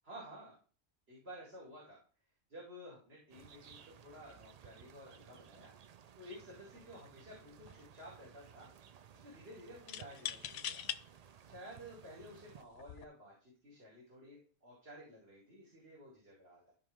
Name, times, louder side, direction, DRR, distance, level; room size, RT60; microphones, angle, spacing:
voice 1, 0.0-0.5 1.1-2.0 2.5-5.7 6.1-8.7 9.1-10.8 11.5-16.7, equal, 55° right, -5 dB, 2.9 m, -53 dB
sound 1, 3.3-12.6, right 8 dB, 75° right, 0.3 m, -58 dB
sound 2, 6.8-7.0 7.3-8.0 9.9-11.0 11.7-11.8 12.7-13.0, left 10 dB, 80° left, 0.9 m, -42 dB
13.0 x 4.9 x 3.6 m, 0.38 s
omnidirectional pair, 1.2 m